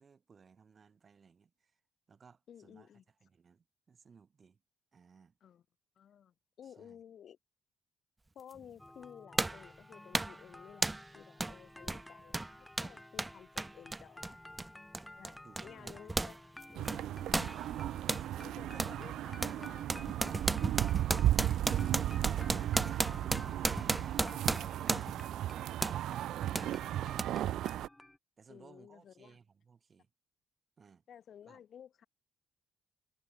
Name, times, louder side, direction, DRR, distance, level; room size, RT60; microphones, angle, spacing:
voice 1, 0.0-1.8 2.1-2.9 3.2-4.6 4.9-5.4 6.6-7.0 15.4-16.1 18.0-19.3 20.6-23.0 23.6-25.7 28.4-30.1 30.8-31.0 31.4-31.6, right 5 dB, 40° right, 3.2 m, -60 dB
voice 2, 2.5-3.0 5.4-5.6 6.0-7.4 8.3-14.4 15.2-17.2 18.4-19.9 23.9-24.4 28.5-29.4 31.1-32.1, left 9 dB, 60° left, 2.5 m, -55 dB
sound 1, 8.5-8.6 9.4-9.7 10.1-10.4 10.8-11.1 11.4-11.6 11.8-16.4 16.6-18.3 18.8-19.0 19.4-25.3 25.8-26.0 26.5-26.7 27.2-27.3, right 2 dB, 15° right, 0.7 m, -34 dB
sound 2, 8.8-28.2, left 1 dB, 10° left, 5.2 m, -54 dB
sound 3, 16.7-27.9, right 13 dB, 80° right, 0.4 m, -35 dB
cardioid pair, 90°, 0 cm